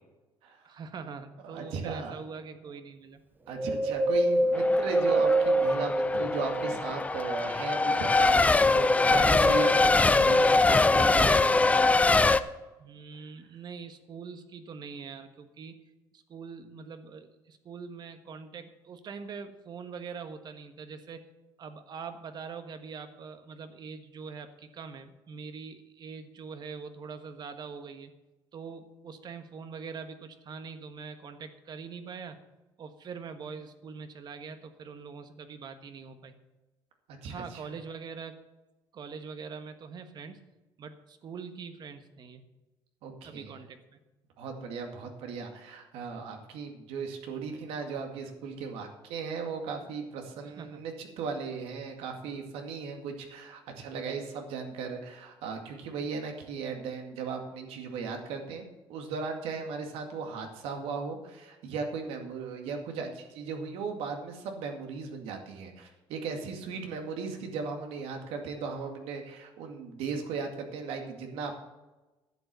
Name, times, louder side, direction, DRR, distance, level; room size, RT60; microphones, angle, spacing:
voice 1, 0.6-3.2 12.8-15.8 16.1-21.3 21.6-28.1 28.5-32.4 32.8-36.3 37.3-38.4 38.9-40.4 40.8-42.4 43.2-44.0 50.4-50.8, right 5 dB, 45° right, 9 dB, 1.4 m, -43 dB
voice 2, 1.4-2.2 3.5-11.5 37.2-37.6 43.0-43.6 44.4-71.5, right 5 dB, 80° right, 4 dB, 2.2 m, -37 dB
Wind, 3.5-7.1 7.7-8.9 9.4-9.5, right 1 dB, 20° right, 1.1 m, -27 dB
Race car auto racing / Accelerating revving vroom / Mechanisms, 4.5-12.4, left 3 dB, 15° left, 0.5 m, -23 dB
11.0 x 7.9 x 6.9 m, 1.1 s
cardioid pair, 110°, 10 cm